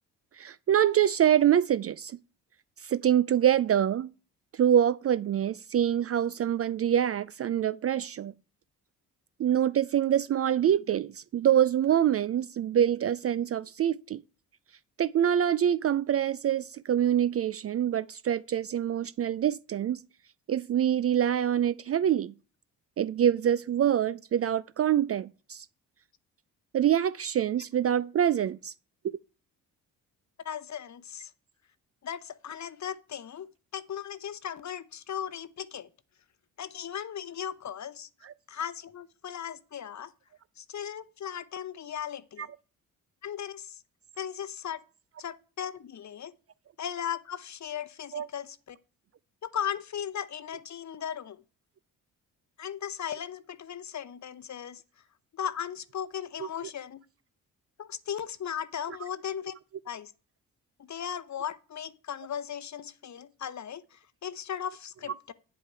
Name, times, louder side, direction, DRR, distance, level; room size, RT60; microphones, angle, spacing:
voice 1, 0.4-2.2 2.8-4.1 4.5-8.3 9.4-14.2 15.0-20.0 20.5-22.3 23.0-25.7 26.7-28.7 38.2-38.3 42.4-42.5 48.1-48.3 56.4-56.7, right 10 dB, 35° right, 0.4 m, -25 dB
voice 2, 30.4-31.3 32.0-35.9 36.6-38.1 38.5-40.1 40.6-42.5 43.2-43.8 44.2-44.8 45.2-46.3 46.8-48.8 49.4-51.4 52.6-54.8 55.3-57.0 57.8-59.5 59.8-60.1 60.8-65.3, left 9 dB, 40° left, 0.8 m, -37 dB
8.9 x 7.7 x 4.5 m
hypercardioid pair, 45°, 43 cm